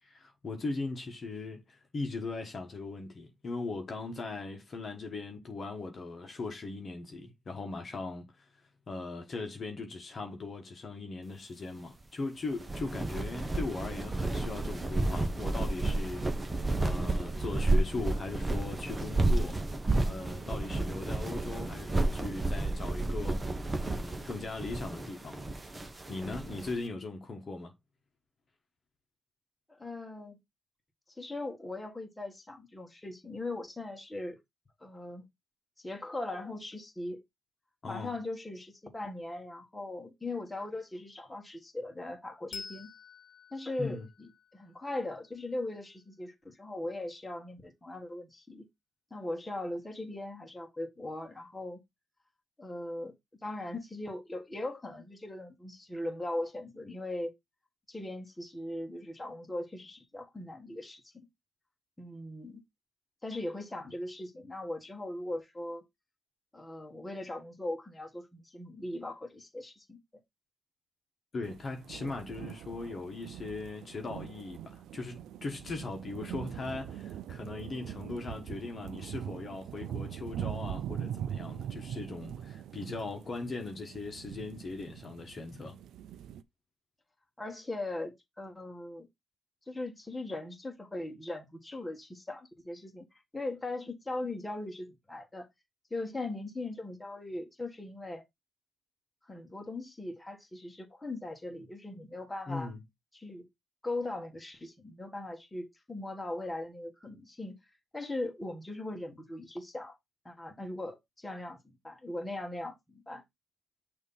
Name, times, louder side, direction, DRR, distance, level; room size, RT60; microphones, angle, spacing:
voice 1, 0.0-8.5 8.9-19.6 20.0-23.4 23.9-25.4 26.1-27.7 37.8-38.1 43.8-44.1 71.3-85.8 102.5-102.8, left 3 dB, 35° left, 1.3 m, -39 dB
sound 1, 12.5-26.7, right 2 dB, 20° right, 1.0 m, -31 dB
voice 2, 29.7-30.4 31.2-34.4 34.8-35.2 35.8-37.2 37.9-42.9 43.5-48.7 49.1-51.8 52.6-53.1 53.4-57.3 57.9-61.3 62.0-62.6 63.2-65.8 66.5-70.0 87.4-89.1 89.7-93.1 93.3-95.5 95.9-98.2 99.2-102.7 103.1-103.5 103.8-107.5 107.9-110.0 110.2-113.2, left 2 dB, 10° left, 1.5 m, -39 dB
Bell, 42.5-45.6, left 5 dB, 55° left, 1.1 m, -49 dB
sound 2, 71.4-86.4, right 10 dB, 85° right, 0.5 m, -42 dB
6.4 x 2.9 x 5.4 m
cardioid pair, 125°, 0 cm